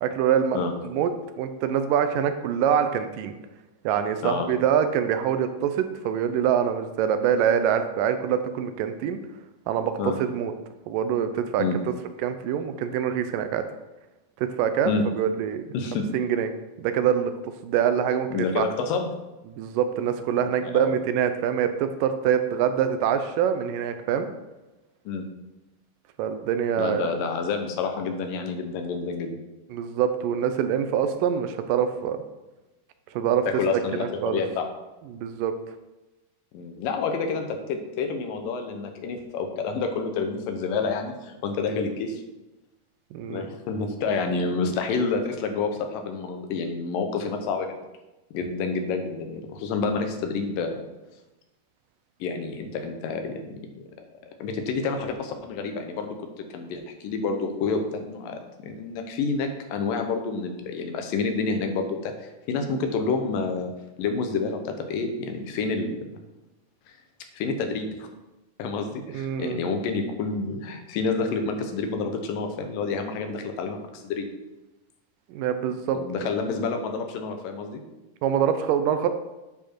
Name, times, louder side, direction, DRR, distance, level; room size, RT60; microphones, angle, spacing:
voice 1, 0.0-1.1 1.4-3.3 3.9-9.2 9.7-10.5 10.9-11.6 12.2-13.7 14.4-15.6 16.1-16.5 16.8-17.3 17.6-18.7 19.5-24.3 26.2-27.0 29.7-32.2 33.2-33.5 33.7-34.4 35.1-35.5 43.1-43.5 69.1-69.7 75.3-76.3 78.2-79.1, right 8 dB, 80° right, 9 dB, 2.3 m, -25 dB
voice 2, 15.7-16.1 18.3-19.1 20.6-21.0 25.1-25.3 26.8-29.3 33.5-34.7 36.5-42.2 43.3-47.8 48.3-50.8 52.2-53.9 54.4-63.7 64.0-66.0 67.3-68.1 68.6-73.8 74.0-74.3 75.9-77.8, left 4 dB, 80° left, 5 dB, 2.6 m, -28 dB
10.0 x 4.8 x 4.5 m, 1.0 s
omnidirectional pair, 3.9 m